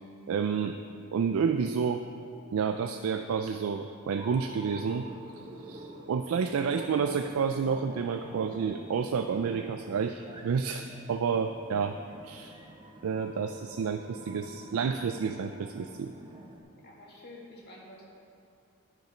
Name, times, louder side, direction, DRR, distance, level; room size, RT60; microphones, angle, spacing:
voice 1, 0.3-0.8 1.1-2.0 2.5-5.1 5.7-12.0 12.2-12.6 13.0-16.1, right 6 dB, 80° right, 7 dB, 0.4 m, -30 dB
sound 1, 4.1-16.6, right 1 dB, 20° right, 0.8 m, -47 dB
voice 2, 16.8-18.0, left 1 dB, 50° left, -4 dB, 2.0 m, -49 dB
12.0 x 5.1 x 5.7 m, 2.5 s
head